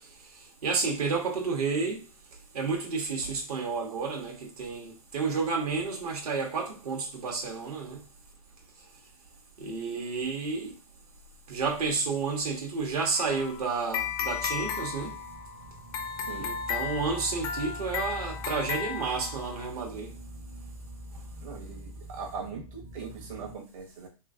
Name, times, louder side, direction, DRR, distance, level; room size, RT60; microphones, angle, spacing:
voice 1, 0.6-2.0 2.5-8.0 9.6-10.7 11.5-15.1 16.4-20.1, right 4 dB, 80° right, 1.1 m, -31 dB
sound 1, 13.2-19.7, left 8 dB, 25° left, 0.4 m, -35 dB
sound 2, 14.0-23.6, right 1 dB, 30° right, 0.6 m, -44 dB
voice 2, 21.4-24.1, right 5 dB, 60° right, 1.0 m, -40 dB
3.0 x 2.7 x 2.4 m
hypercardioid pair, 125°, 19 cm